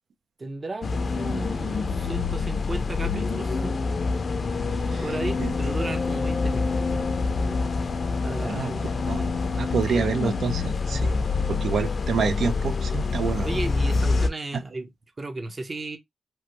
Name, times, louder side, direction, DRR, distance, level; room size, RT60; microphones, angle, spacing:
voice 1, 0.4-3.7 5.0-7.1 7.3-7.7 8.2-8.8 9.9-10.1 13.4-16.0, right 2 dB, 40° right, 0.7 m, -35 dB
sound 1, 0.8-14.3, left 4 dB, 55° left, 0.4 m, -26 dB
voice 2, 9.6-11.1 11.5-13.5, right 5 dB, 85° right, 0.4 m, -27 dB
3.0 x 2.1 x 2.8 m
cardioid pair, 80°, 0 cm